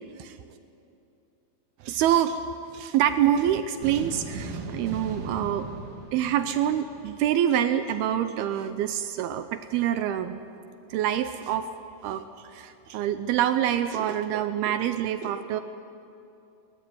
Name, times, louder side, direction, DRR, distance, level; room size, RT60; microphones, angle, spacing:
voice 1, 1.8-2.4 2.7-5.7 6.1-10.4 10.9-11.6 12.0-12.2 12.5-15.6, right 10 dB, 80° right, 10 dB, 2.4 m, -26 dB
sound 1, 3.8-7.3, right 3 dB, 55° right, 3.1 m, -38 dB
22.0 x 19.5 x 9.6 m, 2.7 s
omnidirectional pair, 4.9 m